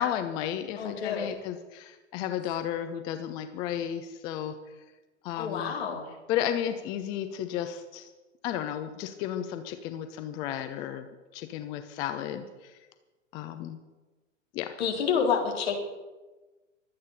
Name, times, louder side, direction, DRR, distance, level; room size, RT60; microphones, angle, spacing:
voice 1, 0.0-4.6 5.2-5.7 6.3-8.1 8.4-11.1 11.3-12.7 13.3-13.8 14.5-14.7, left 10 dB, 10° left, 8 dB, 0.4 m, -33 dB
voice 2, 0.8-1.4 5.4-6.1 14.8-15.8, left 6 dB, 55° left, 1 dB, 3.7 m, -28 dB
23.5 x 8.6 x 5.6 m, 1.2 s
figure-of-eight pair, 100°, 38 cm